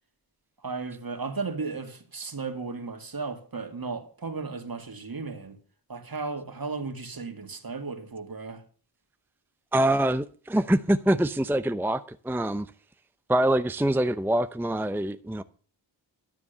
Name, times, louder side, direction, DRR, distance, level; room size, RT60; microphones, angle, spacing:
voice 1, 0.6-5.6 5.9-8.6, right 4 dB, 50° right, 2.3 m, -35 dB
voice 2, 9.7-12.7 13.3-15.4, right 1 dB, 5° right, 0.7 m, -25 dB
12.5 x 7.2 x 6.8 m
cardioid pair, 40°, 46 cm